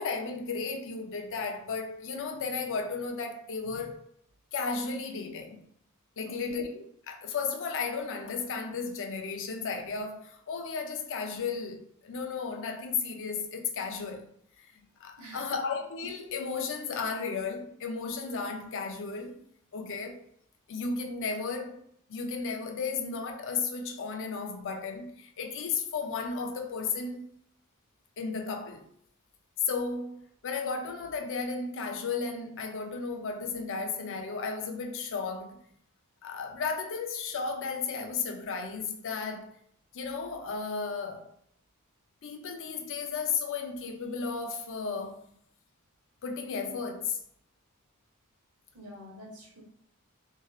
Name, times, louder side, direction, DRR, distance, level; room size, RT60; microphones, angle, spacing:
voice 1, 0.0-4.0 4.5-5.6 6.2-14.3 14.6-14.7 15.0-19.3 19.7-20.2 20.7-21.8 22.1-27.3 28.2-28.8 29.6-35.6 36.2-39.6 39.9-41.3 42.2-45.3 46.2-47.2, left 5 dB, 60° left, 0.5 m, -34 dB
voice 2, 6.2-6.5 15.2-15.5 48.7-49.6, equal, 75° right, 1.2 m, -47 dB
3.1 x 2.6 x 2.3 m
head